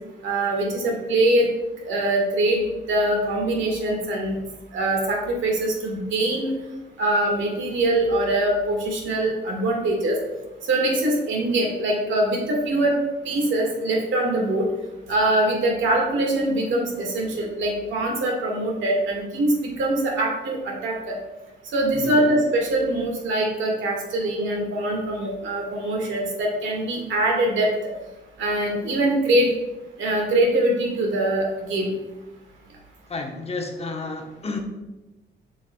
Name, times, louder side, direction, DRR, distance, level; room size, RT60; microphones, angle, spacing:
voice 1, 0.2-1.5 1.9-2.6 2.9-4.4 4.7-6.5 7.0-10.2 10.7-12.9 13.2-14.7 15.1-21.1 21.7-27.7 28.4-29.5 30.0-31.9, right 1 dB, 75° right, 0 dB, 1.7 m, -23 dB
voice 2, 33.1-34.6, left 3 dB, 30° left, 3 dB, 0.9 m, -31 dB
7.2 x 5.7 x 2.2 m, 1.0 s
cardioid pair, 90°, 20 cm